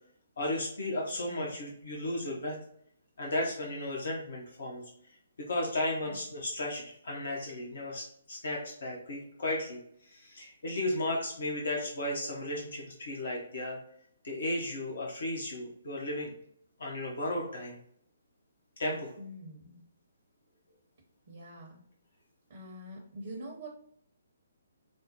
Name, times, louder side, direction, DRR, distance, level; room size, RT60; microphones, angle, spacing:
voice 1, 0.4-2.6 3.2-4.8 5.4-9.8 10.1-13.8 14.2-16.3 16.8-17.8 18.8-19.1, left 1 dB, 55° left, -1 dB, 0.9 m, -34 dB
voice 2, 19.2-19.8 21.3-21.8 22.5-23.7, right 1 dB, 45° right, 0 dB, 0.8 m, -45 dB
5.1 x 2.1 x 2.7 m, 0.67 s
figure-of-eight pair, 135°, 0 cm